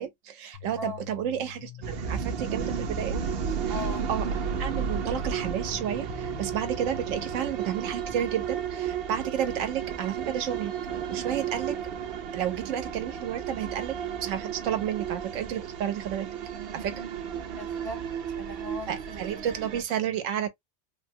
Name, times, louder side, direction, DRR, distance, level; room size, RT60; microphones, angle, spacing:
voice 1, 0.0-3.7 4.1-4.2 4.6-10.7 11.1-11.8 12.3-16.3 16.7-17.0 18.9-20.5, right 9 dB, 80° right, 1.0 m, -31 dB
sound 1, 0.5-7.4, left 11 dB, 60° left, 0.6 m, -45 dB
sound 2, 1.8-19.8, right 7 dB, 60° right, 0.7 m, -33 dB
voice 2, 3.7-4.1 17.6-19.4, left 1 dB, 35° right, 0.3 m, -38 dB
3.3 x 2.1 x 2.7 m
omnidirectional pair, 1.3 m